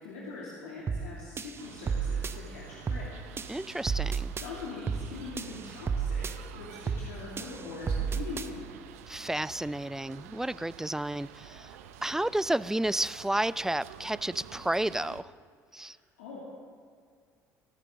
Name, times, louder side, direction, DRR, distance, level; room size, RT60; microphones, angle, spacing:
voice 1, 0.0-3.2 4.4-8.7 15.7-16.4, left 4 dB, 70° left, -5 dB, 2.7 m, -43 dB
sound 1, 0.9-1.1 1.4-2.4 2.9-3.1 3.4-4.5 4.9-5.1 5.4-6.4 6.9-7.1 7.4-8.5, right 6 dB, 30° right, 0.8 m, -32 dB
sound 2, 1.6-15.2, right 9 dB, 70° right, 0.8 m, -49 dB
voice 2, 3.5-4.3 9.1-11.8 12.0-15.3 15.7-16.0, right 1 dB, 5° right, 19 dB, 0.4 m, -31 dB
25.0 x 14.5 x 3.8 m, 2.1 s
figure-of-eight pair, 55°, 8 cm